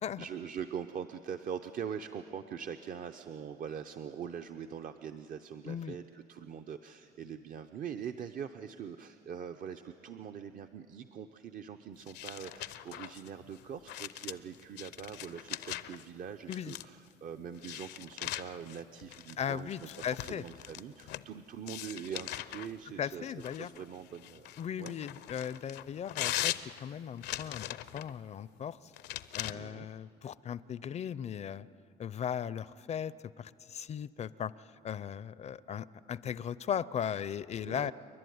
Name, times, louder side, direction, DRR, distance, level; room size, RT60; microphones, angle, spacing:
voice 1, 0.2-24.5 24.8-25.0 29.5-29.9 37.6-37.9, right 8 dB, 55° right, 8 dB, 0.7 m, -43 dB
voice 2, 5.7-6.0 16.5-16.7 19.4-20.4 23.0-23.7 24.6-26.5 26.8-27.6 27.9-28.8 29.3-31.7 32.0-34.5 34.8-37.9, left 8 dB, 40° left, 18 dB, 0.5 m, -37 dB
sound 1, 12.0-16.1 16.5-17.1 17.6-21.3 21.7-22.7 23.4-28.1 28.9-29.5, left 14 dB, 80° left, 0.7 m, -40 dB
29.5 x 11.5 x 9.4 m, 2.5 s
cardioid pair, 110°, 17 cm